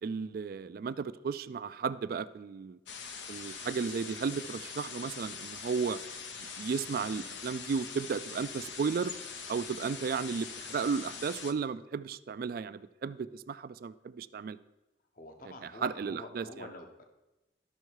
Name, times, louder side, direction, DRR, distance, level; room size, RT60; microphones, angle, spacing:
voice 1, 0.0-2.8 3.3-6.0 6.4-9.1 9.5-14.6 15.6-16.7, right 5 dB, 50° right, 14 dB, 0.3 m, -34 dB
sound 1, 2.9-11.5, left 6 dB, 80° left, 0.8 m, -43 dB
voice 2, 15.1-17.0, left 2 dB, 50° left, 4 dB, 0.9 m, -47 dB
12.5 x 5.6 x 4.6 m, 1.0 s
head